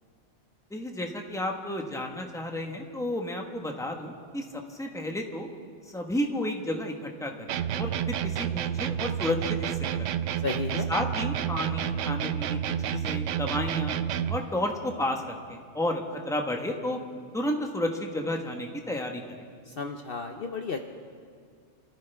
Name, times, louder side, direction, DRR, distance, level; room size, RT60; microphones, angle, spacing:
voice 1, 0.7-5.5 5.9-10.3 10.9-14.0 14.3-17.0 17.3-19.2, left 1 dB, 5° left, 2 dB, 1.2 m, -32 dB
sound 1, 7.5-14.5, right 9 dB, 80° right, 0.9 m, -30 dB
voice 2, 10.4-10.9 19.6-20.8, left 4 dB, 55° left, 5 dB, 0.9 m, -33 dB
27.5 x 14.5 x 3.5 m, 2.1 s
omnidirectional pair, 1.3 m